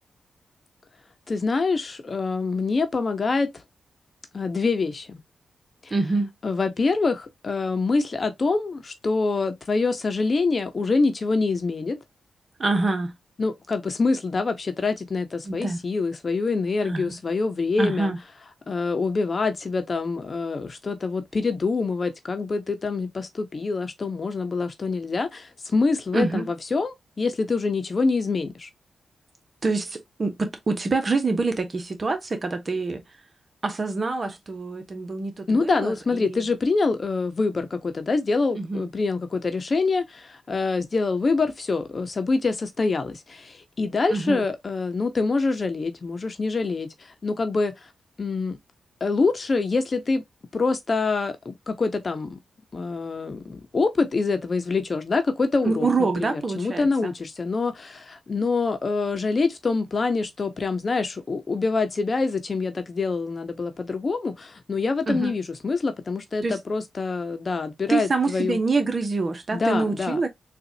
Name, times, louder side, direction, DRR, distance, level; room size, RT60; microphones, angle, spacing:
voice 1, 1.3-3.5 4.3-5.2 5.8-5.9 6.4-12.0 13.4-18.1 18.7-28.7 35.5-46.9 47.2-47.7 48.2-48.6 49.0-50.2 50.5-52.4 52.7-68.6 69.5-70.2, left 3 dB, 50° left, 0.8 m, -25 dB
voice 2, 5.9-6.3 12.6-13.1 15.4-15.8 16.8-17.2 17.8-18.2 26.1-26.5 29.6-33.0 33.6-36.5 38.6-38.9 44.1-44.5 55.6-57.1 65.1-65.3 66.4-66.6 67.9-70.3, right 3 dB, 45° right, 1.1 m, -26 dB
4.0 x 2.5 x 2.7 m
supercardioid pair, 50°, 0 cm